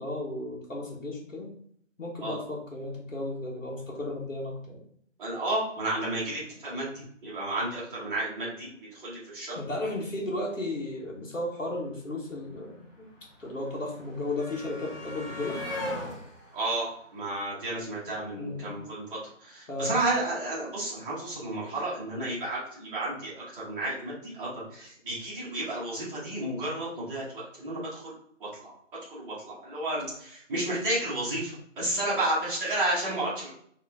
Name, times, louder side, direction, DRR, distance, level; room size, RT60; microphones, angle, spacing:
voice 1, 0.0-1.5 2.0-4.8 9.5-13.1 13.4-15.6 18.4-18.7 19.7-20.0, left 2 dB, 80° left, -3 dB, 1.6 m, -34 dB
voice 2, 5.2-9.6 16.5-16.9 17.1-27.2 27.6-28.7 29.1-33.5, right 2 dB, 5° right, -13 dB, 1.1 m, -32 dB
sound 1, 11.6-11.7 11.8-18.0 19.2-19.3 19.6-19.7, left 1 dB, 15° left, 1.7 m, -40 dB
4.5 x 3.2 x 3.6 m, 0.63 s
figure-of-eight pair, 155°, 38 cm